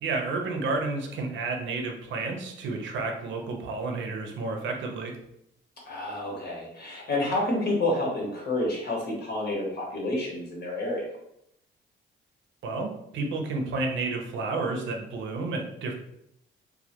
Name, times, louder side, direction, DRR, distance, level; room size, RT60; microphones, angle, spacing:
voice 1, 0.0-5.2 12.6-15.9, right 3 dB, 70° right, 3 dB, 0.6 m, -31 dB
voice 2, 5.9-11.1, left 1 dB, 55° left, -2 dB, 1.0 m, -29 dB
2.2 x 2.2 x 2.8 m, 0.76 s
cardioid pair, 90°, 20 cm